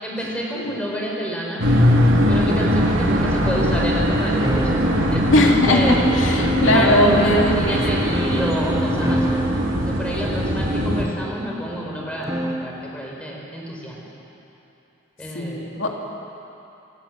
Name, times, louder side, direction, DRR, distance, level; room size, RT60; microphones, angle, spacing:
voice 1, 0.0-1.6 2.3-4.4 4.9-6.0 6.7-9.4 9.8-14.1 15.2-15.7, equal, 5° left, -3 dB, 4.7 m, -28 dB
sound 1, 1.6-11.0, equal, 75° right, 2.7 m, -21 dB
sound 2, 4.4-12.8, right 1 dB, 15° right, 1.0 m, -27 dB
voice 2, 5.3-8.0 15.3-16.1, left 1 dB, 70° left, 0 dB, 2.8 m, -20 dB
26.0 x 13.0 x 9.2 m, 2.8 s
head